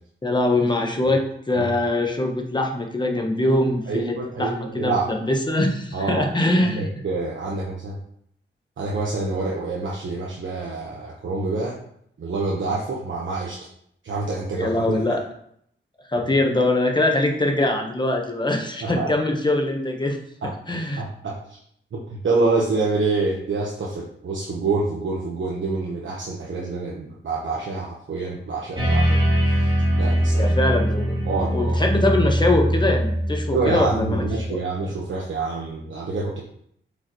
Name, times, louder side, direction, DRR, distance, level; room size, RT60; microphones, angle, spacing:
voice 1, 0.2-3.8 4.1-6.9 14.6-15.2 16.1-20.2 20.7-21.0 30.4-31.2 31.5-34.2 34.5-34.6, left 2 dB, 20° left, 2 dB, 1.2 m, -22 dB
voice 2, 3.9-5.1 5.9-6.2 6.6-8.0 8.8-11.8 12.2-13.6 14.0-15.0 18.8-19.1 20.4-20.5 21.0-21.6 21.9-29.7 30.0-30.6 31.3-31.8 33.5-36.4, right 3 dB, 65° right, -3 dB, 1.2 m, -27 dB
sound 1, 28.8-34.4, equal, 25° right, 2.1 m, -22 dB
8.0 x 5.3 x 3.1 m, 0.69 s
wide cardioid pair, 140°, 21 cm